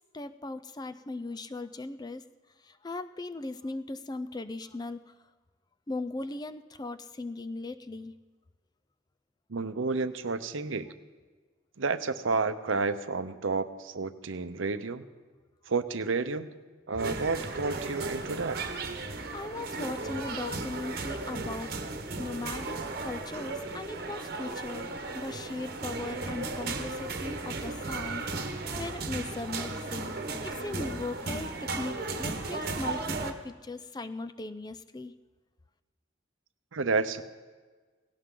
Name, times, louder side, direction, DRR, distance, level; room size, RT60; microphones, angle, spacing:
voice 1, 0.1-2.2 2.6-5.2 5.9-8.1 19.3-21.7 22.2-30.1 30.4-35.2, left 2 dB, 20° left, 11 dB, 0.4 m, -38 dB
voice 2, 9.5-10.9 11.8-15.0 15.7-16.5 16.9-18.6 36.7-37.2, right 4 dB, 85° right, 11 dB, 0.8 m, -30 dB
sound 1, 17.0-33.3, right 3 dB, 50° right, 1.2 m, -35 dB
17.5 x 17.5 x 3.8 m, 1.4 s
head